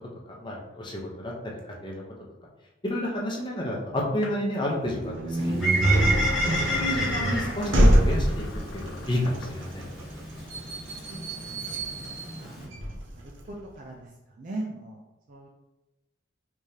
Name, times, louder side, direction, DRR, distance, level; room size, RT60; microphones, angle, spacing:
voice 1, 0.3-1.3 1.8-2.0 2.8-5.5 5.9-6.0 6.7-8.4 8.7-9.8, left 1 dB, 25° left, -2 dB, 0.7 m, -30 dB
sound 1, 4.2-4.4 5.8-9.6, left 5 dB, 75° left, 0.3 m, -39 dB
sound 2, 4.8-13.5, right 1 dB, 80° right, 0.6 m, -26 dB
Bird, 5.3-12.6, right 1 dB, ahead, 1.5 m, -32 dB
voice 2, 10.8-13.2 13.5-14.1 14.4-15.0 15.3-15.5, right 2 dB, 40° right, -2 dB, 0.4 m, -41 dB
3.5 x 3.3 x 2.7 m, 1.0 s
head